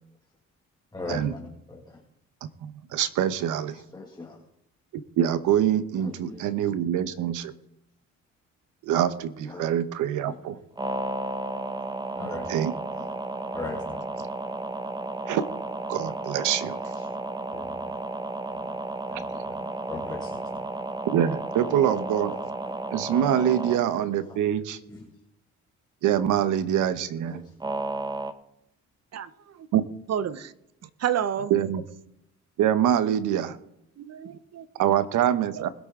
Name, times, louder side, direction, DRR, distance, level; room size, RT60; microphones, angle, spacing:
voice 1, 0.9-2.0 3.7-4.4 5.9-6.5 9.4-9.7 10.2-10.4 12.2-13.1 13.5-14.3 16.9-17.2 17.5-18.0 18.5-18.8 19.1-20.7 21.6-22.8 23.6-23.9 24.2-24.4 24.9-25.1 26.8-26.9 27.2-27.4, left 3 dB, 15° left, -1 dB, 2.1 m, -41 dB
voice 2, 2.4-3.8 5.2-7.5 8.8-10.6 12.5-12.7 15.3-15.4 15.9-16.8 21.1-22.3 22.9-24.8 26.0-27.4 29.7-29.8 31.5-31.8 32.6-33.6 34.8-35.7, right 10 dB, 85° right, 13 dB, 1.0 m, -25 dB
sound 1, 10.8-23.8 27.6-28.3, right 2 dB, 15° right, 1.0 m, -33 dB
voice 3, 29.1-29.7 30.1-30.5 31.0-31.5 34.0-34.7 35.6-35.7, right 9 dB, 55° right, 14 dB, 0.9 m, -30 dB
21.0 x 8.4 x 3.8 m, 0.80 s
cardioid pair, 90°, 30 cm